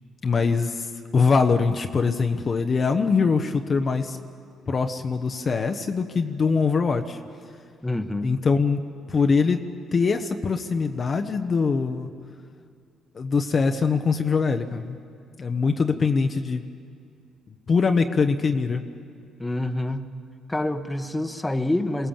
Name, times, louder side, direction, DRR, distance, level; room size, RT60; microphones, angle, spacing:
voice 1, 0.2-0.9 1.1-4.2 4.7-7.2 8.2-8.8 9.1-9.7 9.9-12.1 13.1-15.0 15.4-16.6 17.7-18.8, left 5 dB, 45° left, 6 dB, 1.0 m, -23 dB
voice 2, 7.8-8.3 19.4-20.1 20.5-22.1, left 1 dB, 15° left, 7 dB, 1.3 m, -27 dB
22.5 x 17.5 x 7.4 m, 2.2 s
hypercardioid pair, 55°, 0 cm